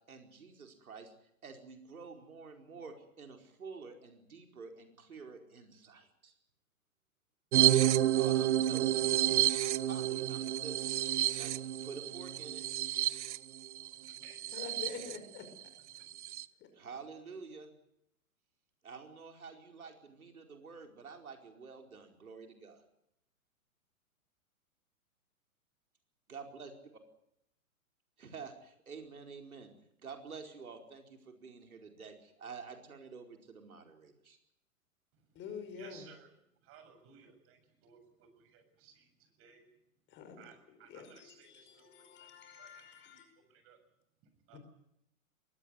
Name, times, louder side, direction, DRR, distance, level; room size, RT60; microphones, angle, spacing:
voice 1, 0.1-1.1 1.4-6.3 8.2-9.0 9.8-11.5 11.8-12.6 16.7-17.7 18.8-22.8 26.3-26.7 28.2-34.4, right 5 dB, 80° right, 4 dB, 4.8 m, -49 dB
sound 1, 7.5-15.2 15.6-15.7 15.9-16.4, right 13 dB, 55° right, 1.0 m, -30 dB
voice 2, 13.9-14.7 15.8-16.3 35.1-39.7 40.3-43.0 43.4-43.8 44.2-44.6, right 6 dB, 30° right, 8 dB, 7.2 m, -60 dB
voice 3, 14.5-15.5 16.6-16.7 35.4-36.0 40.1-40.4 40.9-41.1 41.5-43.3 44.5-44.6, left 6 dB, 25° left, 7 dB, 5.6 m, -46 dB
22.5 x 18.0 x 9.7 m, 0.78 s
hypercardioid pair, 120°, 43 cm